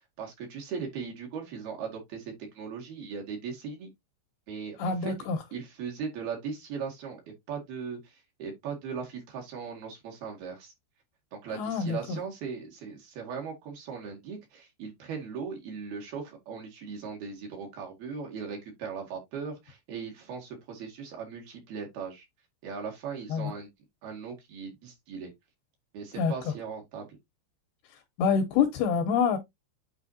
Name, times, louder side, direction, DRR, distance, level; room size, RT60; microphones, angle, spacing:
voice 1, 0.2-3.9 4.5-5.1 5.5-10.7 11.3-22.3 22.6-23.7 24.0-25.3 25.9-27.1, right 6 dB, 60° right, 3.5 m, -38 dB
voice 2, 4.8-5.4 11.5-12.2 23.3-23.5 26.2-26.5 28.2-29.4, left 6 dB, 75° left, 2.6 m, -26 dB
9.2 x 4.2 x 2.8 m
omnidirectional pair, 5.4 m